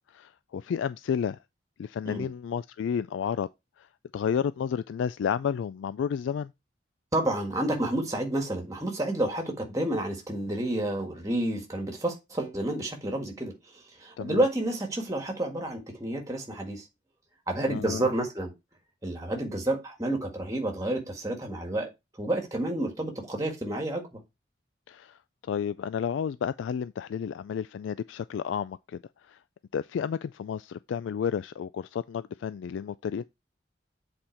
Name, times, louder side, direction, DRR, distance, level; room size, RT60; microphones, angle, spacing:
voice 1, 0.1-1.4 1.8-3.5 3.8-3.9 4.1-6.5 14.2-14.4 17.7-18.1 24.9-25.2 25.5-29.0 29.3-29.4 29.7-33.2, left 7 dB, 80° left, 0.3 m, -31 dB
voice 2, 7.1-16.9 17.5-18.5 19.0-21.9 22.2-24.2, right 1 dB, 15° right, 1.6 m, -30 dB
7.7 x 4.3 x 4.4 m
head